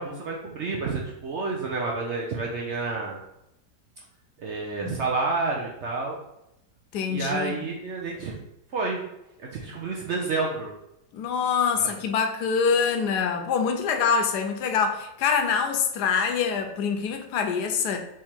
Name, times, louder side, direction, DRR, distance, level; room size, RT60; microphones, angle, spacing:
voice 1, 0.0-3.2 4.4-6.2 7.1-8.3 8.7-9.0 9.4-10.7 11.8-11.9, right 3 dB, 75° right, -1 dB, 0.6 m, -29 dB
voice 2, 6.9-7.6 11.1-18.0, left 6 dB, 70° left, 5 dB, 1.1 m, -25 dB
3.7 x 3.1 x 4.3 m, 0.86 s
omnidirectional pair, 1.9 m